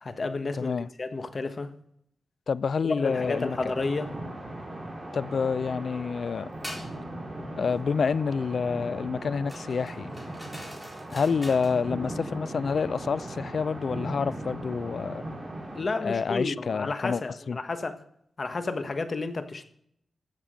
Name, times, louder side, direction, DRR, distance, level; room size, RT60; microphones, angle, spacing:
voice 1, 0.0-1.7 2.9-4.1 15.7-18.0 18.4-19.6, left 3 dB, 45° left, 1.2 m, -31 dB
voice 2, 0.6-0.9 2.5-3.6 5.1-6.5 7.6-10.1 11.1-15.2 16.0-17.2 17.5-17.6, left 5 dB, 60° left, 0.4 m, -28 dB
sound 1, 3.1-15.8, right 1 dB, 20° right, 3.6 m, -38 dB
sound 2, 6.6-6.9 9.5-11.8, equal, 5° left, 3.8 m, -43 dB
14.0 x 7.4 x 5.1 m
wide cardioid pair, 95°, 0 cm